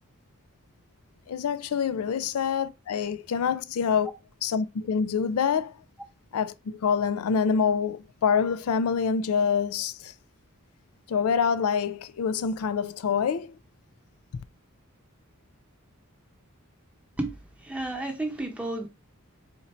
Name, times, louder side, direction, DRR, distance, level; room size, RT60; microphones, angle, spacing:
voice 1, 1.3-4.1 4.4-5.8 6.3-10.1 11.1-13.5, left 6 dB, 90° left, 0.4 m, -26 dB
voice 2, 17.6-18.9, right 2 dB, 5° right, 0.8 m, -31 dB
4.2 x 2.6 x 4.3 m
head